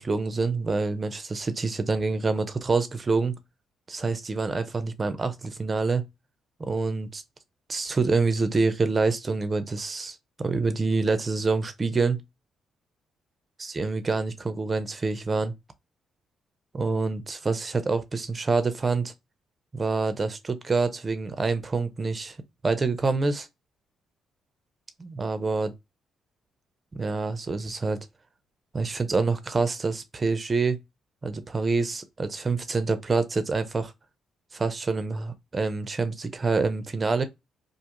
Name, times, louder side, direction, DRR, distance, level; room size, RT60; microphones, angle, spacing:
voice 1, 0.0-3.4 3.9-6.0 6.6-7.2 7.7-12.2 13.6-15.5 16.7-19.1 19.7-22.4 22.6-23.5 25.0-25.7 26.9-28.0 28.7-30.8 31.2-33.9 34.5-37.2, right 4 dB, 30° right, 0.5 m, -26 dB
2.5 x 2.4 x 2.9 m
cardioid pair, 90°, 0 cm